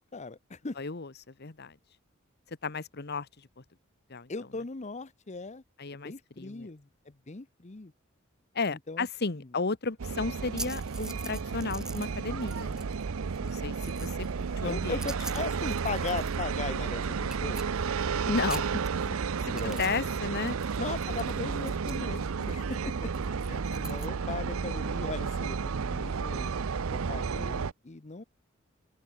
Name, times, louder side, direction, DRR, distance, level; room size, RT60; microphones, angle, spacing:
voice 1, 0.0-0.8 4.3-5.6 5.9-7.9 8.7-9.1 9.3-9.5 14.6-17.6 19.5-19.8 20.8-23.3 23.8-26.5 26.9-28.2, left 3 dB, 35° left, 0.8 m, -38 dB
voice 2, 0.8-1.8 2.5-3.6 4.1-4.3 5.8-6.7 8.5-12.9 13.4-15.0 18.3-18.7 19.5-20.6 23.5-24.0, left 4 dB, 50° left, 1.2 m, -34 dB
sound 1, 10.0-27.7, right 5 dB, 90° right, 0.6 m, -32 dB
sound 2, 10.6-12.1 12.4-13.0 13.3-16.6 16.8-16.9 17.2-18.2 18.4-20.1 20.3-24.1, right 1 dB, 5° right, 0.6 m, -44 dB
open air
head